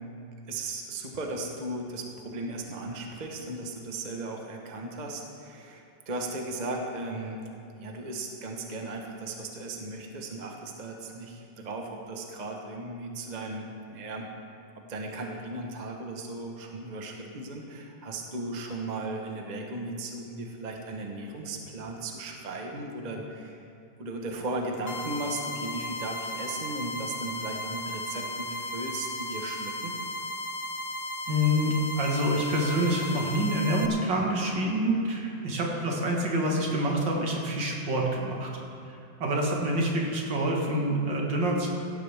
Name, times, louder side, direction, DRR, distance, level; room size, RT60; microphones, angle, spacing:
voice 1, 0.4-7.4 7.8-13.7 13.9-14.3 14.9-23.6 24.0-29.9, right 2 dB, 30° right, 1 dB, 1.0 m, -36 dB
sound 1, 24.9-33.9, left 1 dB, 65° left, 0.5 m, -35 dB
voice 2, 31.3-38.5 39.2-41.7, equal, 70° right, -1 dB, 2.4 m, -27 dB
16.5 x 12.5 x 3.5 m, 2.6 s
omnidirectional pair, 2.1 m